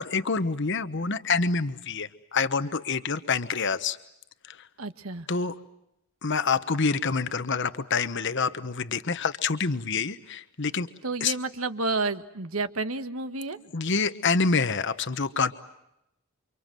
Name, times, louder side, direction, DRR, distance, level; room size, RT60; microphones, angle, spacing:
voice 1, 0.0-4.0 4.5-4.6 5.3-5.5 6.2-10.9 11.2-11.3 13.7-15.5, left 4 dB, 60° left, 11 dB, 1.1 m, -27 dB
voice 2, 4.8-5.3 11.0-13.6, right 3 dB, 80° right, 10 dB, 1.5 m, -30 dB
29.5 x 25.5 x 7.7 m, 0.85 s
head